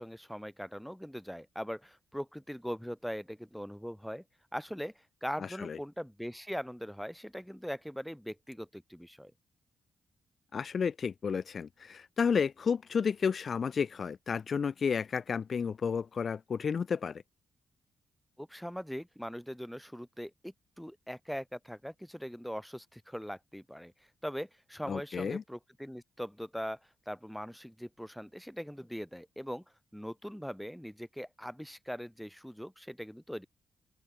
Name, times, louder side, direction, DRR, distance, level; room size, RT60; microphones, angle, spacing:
voice 1, 0.0-4.2 4.5-9.3 18.4-23.9 24.2-26.8 27.1-29.6 29.9-33.5, equal, ahead, 1.8 m, -41 dB
voice 2, 5.4-5.8 10.5-17.2 24.9-25.4, left 6 dB, 50° left, 0.6 m, -32 dB
open air
cardioid pair, 80°, 0 cm